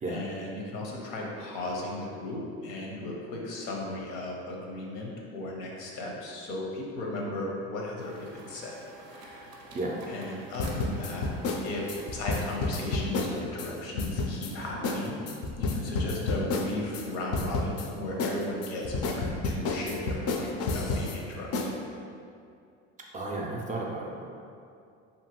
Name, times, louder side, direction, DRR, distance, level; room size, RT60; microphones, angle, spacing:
voice 1, 0.1-8.8 9.1-9.5 10.1-11.3 11.6-15.3 15.6-21.7, left 2 dB, 80° left, -2 dB, 0.7 m, -36 dB
sound 1, 8.0-13.3, right 2 dB, 90° right, 0.5 m, -48 dB
sound 2, 10.6-13.7 14.0-14.5 14.8-15.0 15.3-17.0 17.3-17.9 18.2-21.2 21.5-21.7, left 3 dB, 50° left, 0.4 m, -30 dB
voice 2, 23.1-24.2, right 2 dB, 25° right, -1 dB, 0.4 m, -33 dB
2.7 x 2.6 x 2.9 m, 2.4 s
supercardioid pair, 85°, 33 cm